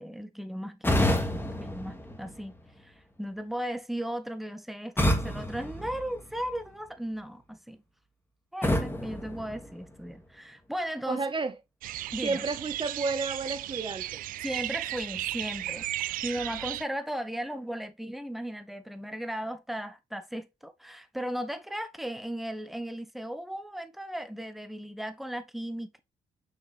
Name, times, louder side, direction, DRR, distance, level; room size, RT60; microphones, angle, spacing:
voice 1, 0.0-2.6 2.8-7.8 8.5-11.2 12.1-12.4 14.4-26.0, equal, ahead, 1.2 m, -36 dB
sound 1, 0.8-2.8 5.0-6.7 8.6-10.2, left 1 dB, 15° left, 2.2 m, -29 dB
voice 2, 11.1-11.5 12.2-14.2, right 3 dB, 35° right, 0.9 m, -31 dB
sound 2, 11.8-16.8, right 14 dB, 75° right, 0.4 m, -35 dB
6.1 x 6.0 x 3.4 m
supercardioid pair, 50°, 14 cm